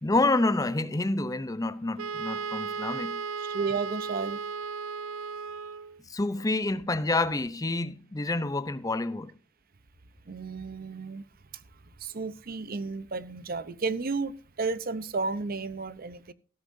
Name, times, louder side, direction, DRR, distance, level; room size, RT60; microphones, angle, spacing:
voice 1, 0.0-3.2 6.1-9.3, left 2 dB, 15° left, 0.6 m, -28 dB
Wind instrument woodwind instrument, 2.0-6.0, right 5 dB, 85° right, 0.6 m, -35 dB
voice 2, 3.5-4.4 10.3-11.2 12.0-16.3, right 4 dB, 45° right, 0.7 m, -32 dB
15.0 x 13.5 x 2.6 m
head